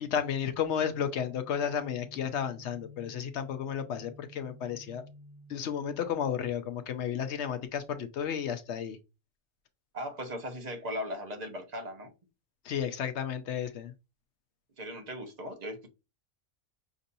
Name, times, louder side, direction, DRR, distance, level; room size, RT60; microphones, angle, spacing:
voice 1, 0.0-5.0 5.5-9.0 12.6-13.9, left 8 dB, 65° left, 0.9 m, -32 dB
sound 1, 0.7-6.2, left 1 dB, 60° right, 3.0 m, -52 dB
voice 2, 9.9-12.1 14.8-15.9, equal, 35° right, 0.9 m, -38 dB
6.0 x 2.7 x 2.6 m
omnidirectional pair, 1.4 m